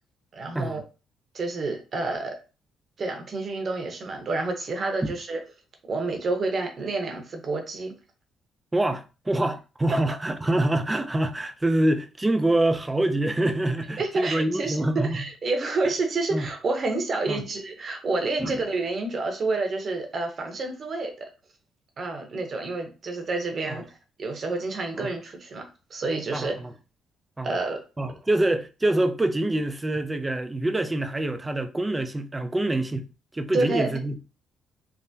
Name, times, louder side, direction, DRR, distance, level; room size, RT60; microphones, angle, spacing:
voice 1, 0.3-0.8 1.3-2.3 3.0-5.4 5.9-7.9 14.0-21.3 22.0-25.6 25.9-26.6 27.4-27.8 33.5-34.0, right 3 dB, 45° right, 0.8 m, -29 dB
voice 2, 8.7-15.2 16.3-16.5 17.3-17.4 18.4-18.6 23.7-23.8 25.0-25.1 26.3-26.7 27.4-27.5 28.0-33.1 33.3-34.3, right 1 dB, 15° right, 0.4 m, -25 dB
3.4 x 2.1 x 2.7 m
cardioid pair, 95°, 0 cm